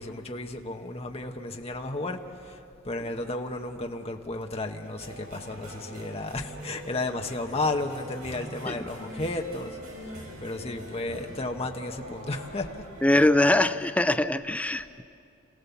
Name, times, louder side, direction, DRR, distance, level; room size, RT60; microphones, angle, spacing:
voice 1, 0.0-12.7, left 2 dB, 30° left, 3 dB, 1.1 m, -33 dB
sound 1, 4.8-13.7, equal, 80° right, 5.6 m, -43 dB
voice 2, 13.0-15.0, left 1 dB, 5° left, 10 dB, 0.4 m, -22 dB
27.5 x 16.0 x 7.1 m, 2.5 s
head